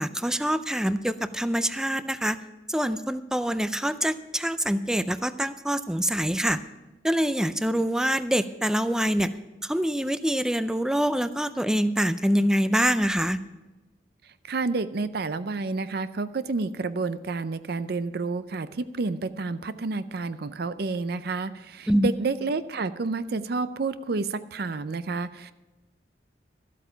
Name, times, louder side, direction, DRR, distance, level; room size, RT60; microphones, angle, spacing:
voice 1, 0.0-2.4 2.7-6.6 7.0-9.3 9.6-13.4 21.9-22.1, equal, 5° right, 12 dB, 0.4 m, -25 dB
voice 2, 14.5-25.5, right 3 dB, 55° right, 13 dB, 0.5 m, -30 dB
13.5 x 8.4 x 5.7 m, 1.1 s
head